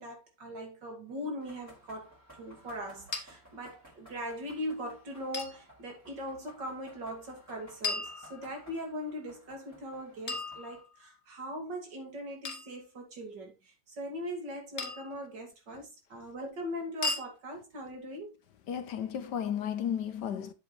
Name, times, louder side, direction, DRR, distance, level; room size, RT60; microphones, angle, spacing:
voice 1, 0.0-18.4, equal, 65° right, 3.1 m, -40 dB
sound 1, 1.4-10.8, equal, 10° right, 4.7 m, -57 dB
sound 2, 3.1-3.2 5.3-5.6 7.8-8.7 10.3-11.2 12.4-12.7 14.8-15.2 17.0-17.3, left 3 dB, 35° left, 1.7 m, -36 dB
voice 2, 18.7-20.5, left 9 dB, 65° left, 1.3 m, -33 dB
8.3 x 7.9 x 3.2 m
omnidirectional pair, 2.1 m